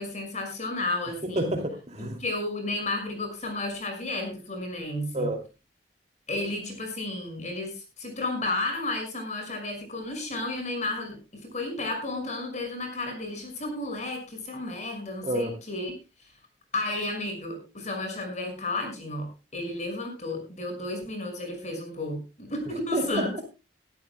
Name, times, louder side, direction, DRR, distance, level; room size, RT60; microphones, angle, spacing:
voice 1, 0.0-1.5 2.2-5.3 6.3-15.9 16.7-23.3, left 2 dB, 40° left, 5.8 m, -32 dB
voice 2, 1.4-2.2 5.1-5.4 15.2-15.5 22.9-23.4, right 1 dB, 40° right, 2.7 m, -29 dB
21.5 x 13.0 x 2.2 m
head